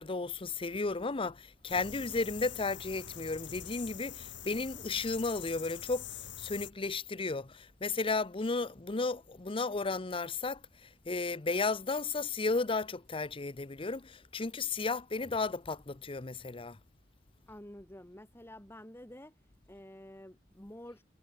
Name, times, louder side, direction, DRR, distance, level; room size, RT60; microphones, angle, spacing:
voice 1, 0.0-6.1 6.4-16.8, left 3 dB, 30° left, 0.7 m, -34 dB
sound 1, 1.7-6.7, left 9 dB, 85° left, 3.6 m, -45 dB
voice 2, 17.5-19.4 19.7-21.0, left 1 dB, 15° left, 2.5 m, -49 dB
head